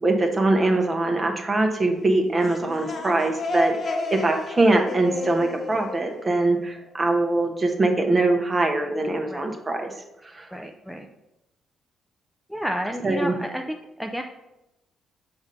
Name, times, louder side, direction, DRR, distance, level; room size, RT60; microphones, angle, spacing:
voice 1, 0.0-10.5 13.0-13.3, right 2 dB, 25° right, 3 dB, 1.0 m, -23 dB
sound 1, 2.2-6.9, left 2 dB, 45° left, 0.9 m, -31 dB
voice 2, 10.5-11.1 12.5-14.2, equal, ahead, 3 dB, 0.4 m, -31 dB
6.9 x 2.7 x 5.3 m, 0.94 s
cardioid pair, 90°, 0 cm